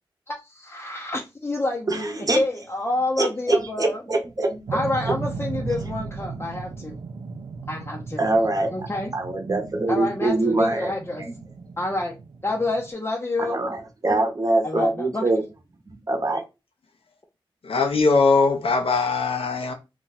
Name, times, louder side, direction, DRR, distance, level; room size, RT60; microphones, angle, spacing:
voice 1, 0.3-4.0 4.7-7.0 7.7-8.3 8.7-9.1 9.9-11.2 11.8-12.1 12.4-13.6 14.6-15.2, left 2 dB, 25° left, 0.6 m, -28 dB
voice 2, 1.9-2.4 3.2-4.8 5.0-5.1 7.2-7.3 8.2-10.9 11.2-11.3 13.4-15.5 15.9-16.4, right 2 dB, 40° right, 0.9 m, -24 dB
sound 1, 4.7-12.9, right 4 dB, 80° right, 0.4 m, -36 dB
voice 3, 17.6-19.7, left 4 dB, 90° left, 0.7 m, -20 dB
2.5 x 2.2 x 4.0 m
wide cardioid pair, 60°, 9 cm